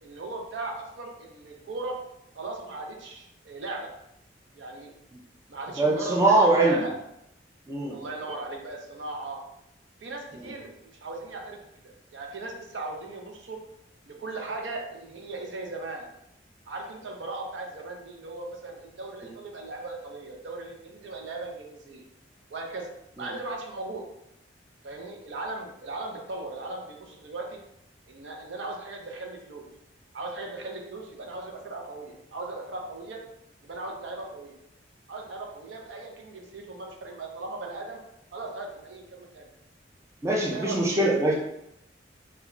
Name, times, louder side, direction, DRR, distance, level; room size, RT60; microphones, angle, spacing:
voice 1, 0.0-2.0 2.3-3.9 4.5-4.9 5.5-6.9 7.9-9.4 10.0-11.6 12.1-13.6 14.1-16.1 16.7-22.0 22.5-22.9 23.2-24.0 24.8-27.6 28.1-29.7 30.1-33.2 33.6-34.5 35.1-38.0 38.3-39.5 40.4-40.9, right 2 dB, 70° right, 1 dB, 0.5 m, -37 dB
voice 2, 5.8-6.8 7.7-8.0 10.3-10.5 40.2-41.3, right 2 dB, 15° right, -3 dB, 0.4 m, -22 dB
2.2 x 2.2 x 3.6 m, 0.80 s
head